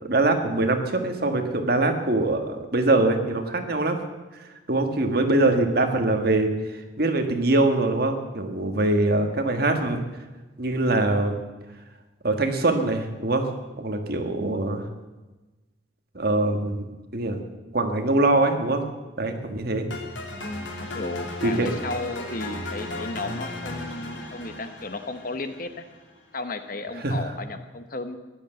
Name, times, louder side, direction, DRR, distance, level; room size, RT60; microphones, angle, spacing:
voice 1, 0.0-4.0 4.7-10.0 10.6-11.4 12.2-13.5 13.8-14.9 16.2-16.9 17.1-17.4 17.7-18.8 19.2-19.9 21.4-21.7 27.0-27.2, right 2 dB, 50° right, 5 dB, 1.8 m, -23 dB
sound 1, 19.9-26.0, left 2 dB, 75° left, 2.9 m, -35 dB
voice 2, 20.8-25.9 26.3-28.2, left 2 dB, 45° left, 8 dB, 1.1 m, -34 dB
15.0 x 11.5 x 7.9 m, 1.2 s
head